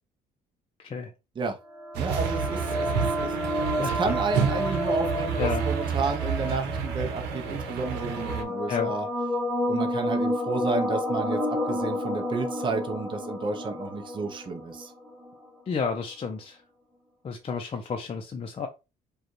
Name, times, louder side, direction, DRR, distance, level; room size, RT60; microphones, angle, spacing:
sound 1, 1.7-15.3, equal, 5° left, 1.5 m, -30 dB
sound 2, 1.9-8.4, right 6 dB, 85° right, 0.8 m, -30 dB
voice 1, 2.0-9.1 9.6-14.9, right 4 dB, 30° right, 0.7 m, -31 dB
voice 2, 15.7-16.6 17.2-18.7, left 5 dB, 35° left, 0.6 m, -31 dB
4.9 x 2.3 x 3.0 m
cardioid pair, 110°, 17 cm